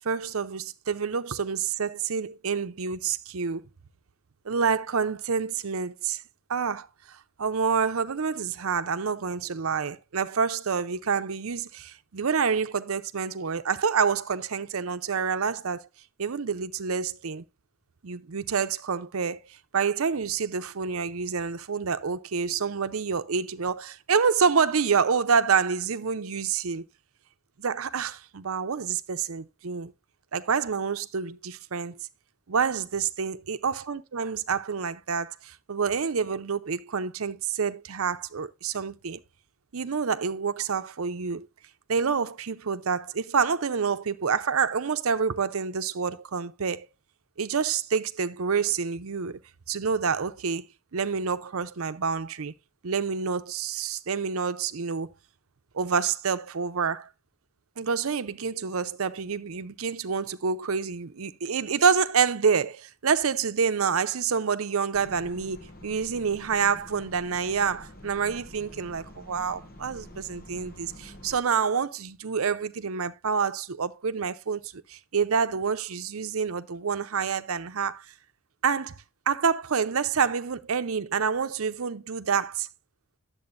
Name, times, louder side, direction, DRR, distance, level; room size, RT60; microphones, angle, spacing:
voice 1, 0.0-3.7 4.4-6.2 6.5-15.8 16.2-17.4 18.0-19.4 19.7-26.8 27.6-29.9 30.3-32.0 32.5-39.2 39.7-41.5 41.9-46.9 47.4-49.4 49.7-50.7 50.9-52.5 52.8-55.1 55.7-57.1 57.8-78.1 78.6-79.0 79.3-82.7, right 6 dB, 80° right, 0.7 m, -27 dB
sound 1, 64.9-71.4, left 1 dB, 40° left, 1.0 m, -47 dB
10.5 x 7.7 x 2.5 m
head